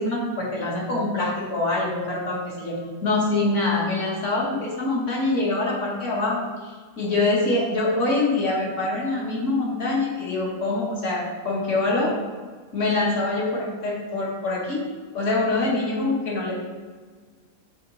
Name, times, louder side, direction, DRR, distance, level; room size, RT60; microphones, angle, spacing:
voice 1, 0.0-12.2 12.7-14.9 15.1-16.5, left 2 dB, 40° left, -3 dB, 1.4 m, -25 dB
6.8 x 4.3 x 4.0 m, 1.5 s
omnidirectional pair, 2.4 m